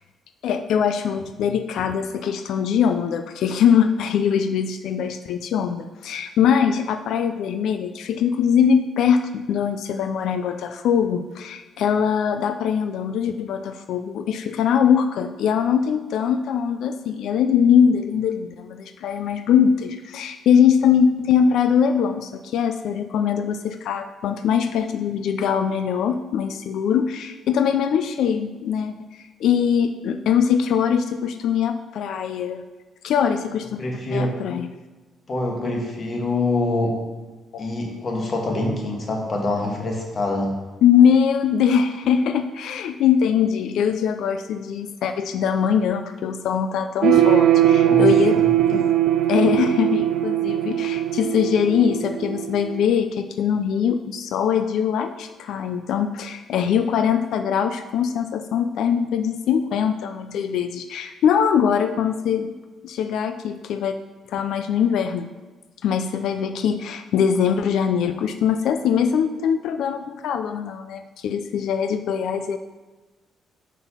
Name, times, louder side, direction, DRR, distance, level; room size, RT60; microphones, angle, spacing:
voice 1, 0.4-32.6 33.0-33.8 34.1-34.7 35.6-35.9 36.6-36.7 37.5-37.7 38.0-38.1 40.8-48.4 48.7-48.8 49.3-62.5 62.8-64.0 64.3-65.3 65.8-72.6, left 7 dB, 80° left, 9 dB, 0.4 m, -22 dB
voice 2, 33.8-34.3 35.3-37.0 37.6-40.5 47.8-48.1 48.3-48.5 49.4-49.5, left 2 dB, 45° left, 1 dB, 1.7 m, -25 dB
sound 1, 47.0-52.8, right 12 dB, 65° right, 0.5 m, -20 dB
6.2 x 5.5 x 5.6 m, 1.2 s
cardioid pair, 90°, 0 cm